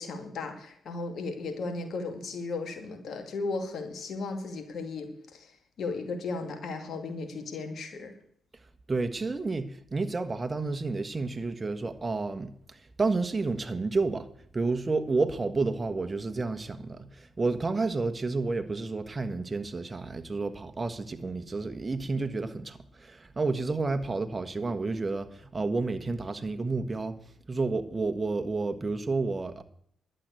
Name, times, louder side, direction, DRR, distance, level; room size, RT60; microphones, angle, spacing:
voice 1, 0.0-5.5 5.8-8.1, left 3 dB, 65° left, 2.4 m, -35 dB
voice 2, 8.9-27.2 27.5-29.6, right 3 dB, 30° right, 1.4 m, -30 dB
11.5 x 7.9 x 8.3 m
hypercardioid pair, 45°, 0 cm